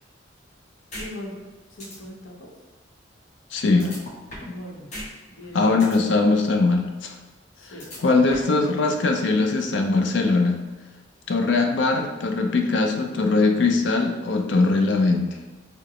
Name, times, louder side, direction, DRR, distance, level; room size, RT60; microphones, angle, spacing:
sound 1, 0.9-1.1 1.4-1.5 1.8-2.0 3.8-4.6 4.9-5.1 5.4-6.0 7.8-8.6, left 1 dB, 35° left, 1.0 m, -37 dB
voice 1, 1.0-1.3 1.7-2.5 3.7-4.0 4.5-4.9 5.3-5.8 7.6-7.8, equal, 85° left, -2 dB, 0.9 m, -39 dB
voice 2, 3.5-3.9 5.5-7.1 8.0-10.6 11.3-15.3, left 3 dB, 65° left, 3 dB, 0.5 m, -21 dB
4.7 x 2.1 x 3.0 m, 1.2 s
head